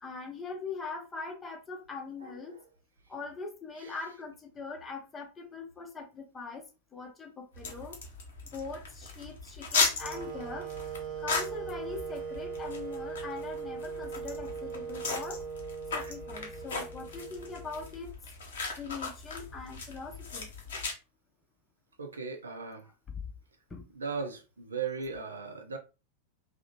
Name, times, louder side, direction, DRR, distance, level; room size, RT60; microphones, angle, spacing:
voice 1, 0.0-2.6 3.1-6.6 6.9-8.0 8.5-10.7 11.2-15.4 15.9-18.1 18.8-20.5 23.7-23.8, left 4 dB, 15° left, 0.6 m, -41 dB
sound 1, 7.5-20.9, left 4 dB, 60° left, 0.8 m, -37 dB
Wind instrument woodwind instrument, 10.0-18.0, right 6 dB, 40° right, 0.8 m, -40 dB
voice 2, 22.0-22.8 24.0-25.8, right 5 dB, 75° right, 0.5 m, -37 dB
2.8 x 2.0 x 2.8 m
figure-of-eight pair, 90°, 0 cm